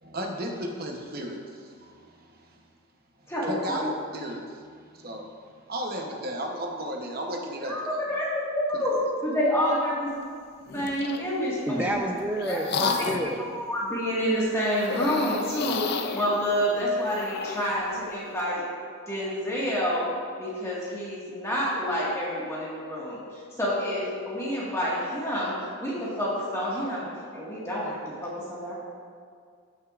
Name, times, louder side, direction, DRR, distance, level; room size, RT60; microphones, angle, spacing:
voice 1, 0.0-2.6 3.2-3.9 4.1-5.3 5.7-8.0 8.7-8.8, right 1 dB, 45° right, 2 dB, 0.9 m, -35 dB
voice 2, 3.3-3.9 7.6-10.1 10.7-11.9 12.4-13.0 13.5-18.7 19.1-20.1 20.4-28.7, equal, 15° left, -7 dB, 1.7 m, -28 dB
sound 1, 10.7-11.3 11.9-13.4 14.8-17.8, left 5 dB, 45° left, 0.4 m, -32 dB
voice 3, 11.7-13.4, right 1 dB, 10° right, 1 dB, 0.6 m, -29 dB
13.5 x 6.4 x 2.5 m, 2.1 s
head